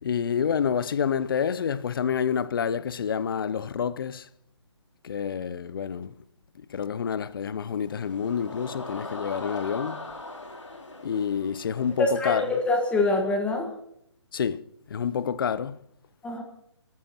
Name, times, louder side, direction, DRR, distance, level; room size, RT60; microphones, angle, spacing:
voice 1, 0.0-4.3 5.0-6.2 6.6-10.1 11.0-12.5 14.3-15.8, left 7 dB, 50° left, 0.7 m, -28 dB
sound 1, 7.7-13.2, left 2 dB, 80° left, 3.4 m, -41 dB
voice 2, 12.0-13.7 16.2-16.4, left 2 dB, 5° left, 1.6 m, -25 dB
29.5 x 13.5 x 3.0 m
figure-of-eight pair, 145°, 15 cm